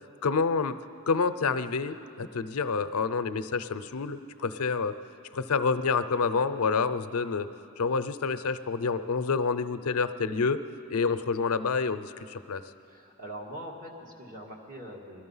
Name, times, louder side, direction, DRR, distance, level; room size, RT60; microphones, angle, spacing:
voice 1, 0.2-0.8 1.1-4.9 5.3-7.5 7.8-10.6 10.9-12.6, left 4 dB, 90° left, 11 dB, 0.6 m, -28 dB
voice 2, 12.9-15.2, right 1 dB, 40° right, 0 dB, 1.8 m, -42 dB
20.0 x 13.0 x 5.6 m, 2.6 s
head